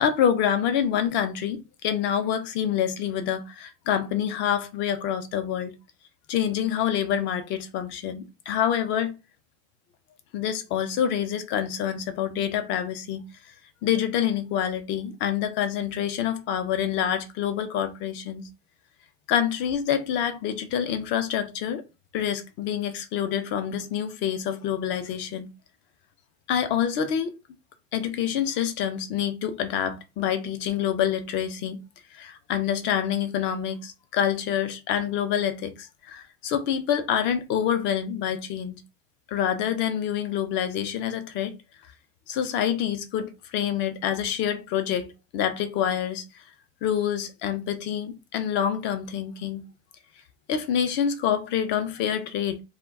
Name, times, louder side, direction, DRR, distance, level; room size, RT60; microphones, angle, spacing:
voice 1, 0.0-5.7 6.3-9.2 10.3-13.2 13.8-18.5 19.3-21.8 22.1-25.5 26.5-27.3 27.9-31.8 32.1-38.8 39.3-41.5 42.3-46.2 46.8-49.6 50.5-52.6, left 9 dB, 40° left, 0.4 m, -27 dB
2.2 x 2.1 x 3.4 m
cardioid pair, 165°, 29 cm